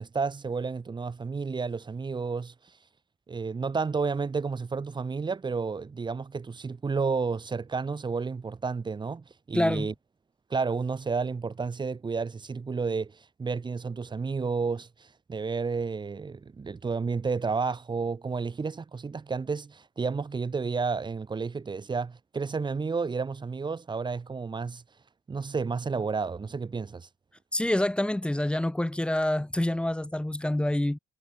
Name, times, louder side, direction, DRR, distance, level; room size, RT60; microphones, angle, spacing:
voice 1, 0.0-2.5 3.3-9.9 10.5-24.8 25.3-27.1, right 4 dB, 25° right, 5.7 m, -31 dB
voice 2, 9.5-9.9 27.5-31.0, left 1 dB, 5° left, 5.1 m, -27 dB
cardioid pair, 110°, 17 cm